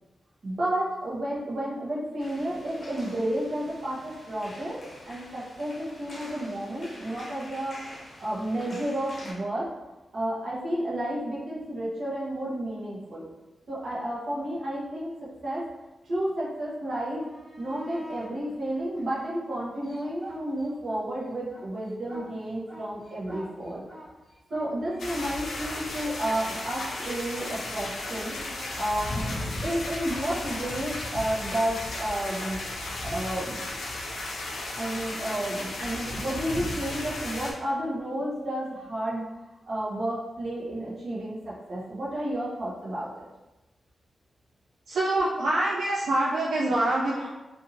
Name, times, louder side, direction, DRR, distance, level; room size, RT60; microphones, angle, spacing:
voice 1, 0.4-4.8 5.1-7.8 8.2-9.7 10.1-13.3 13.7-15.7 16.0-17.3 17.6-23.8 24.5-28.3 28.7-33.7 34.1-34.2 34.7-39.2 39.7-43.2, right 1 dB, 55° right, -7 dB, 1.0 m, -31 dB
sound 1, 2.2-9.3, left 1 dB, 45° left, 0.8 m, -46 dB
sound 2, 17.1-18.3 18.9-21.0 21.3-29.5 32.3-32.4, equal, 20° right, 1.0 m, -46 dB
sound 3, 25.0-37.5, left 2 dB, 80° left, 0.5 m, -34 dB
voice 2, 44.9-47.3, right 1 dB, 80° right, -5 dB, 0.4 m, -25 dB
2.6 x 2.6 x 2.8 m, 1.1 s
wide cardioid pair, 110°, 0 cm